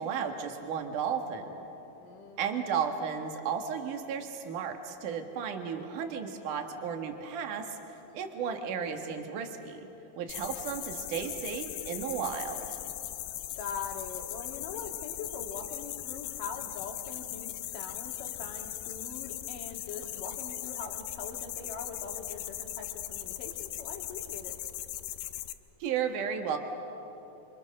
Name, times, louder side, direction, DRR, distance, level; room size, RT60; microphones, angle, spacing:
voice 1, 0.0-1.6 2.4-9.8 10.2-12.8 25.8-26.6, right 7 dB, 65° right, 4 dB, 3.1 m, -34 dB
voice 2, 2.0-2.7 13.6-24.6, left 5 dB, 70° left, 3 dB, 3.5 m, -42 dB
sound 1, 10.3-25.5, left 14 dB, 85° left, 2.5 m, -39 dB
28.0 x 26.5 x 6.6 m, 3.0 s
omnidirectional pair, 4.1 m